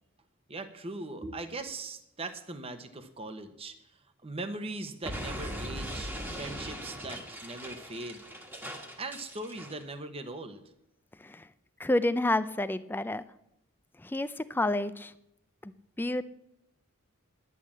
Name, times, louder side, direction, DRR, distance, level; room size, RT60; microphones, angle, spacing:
voice 1, 0.5-3.7 4.2-8.2 9.0-10.6, right 2 dB, 25° right, 9 dB, 0.9 m, -40 dB
Explosion, 5.0-9.8, equal, 10° right, 1.4 m, -40 dB
voice 2, 11.8-13.2 14.0-15.1 15.6-15.7 16.0-16.2, left 1 dB, 10° left, 14 dB, 0.4 m, -29 dB
11.0 x 10.0 x 7.3 m, 0.81 s
head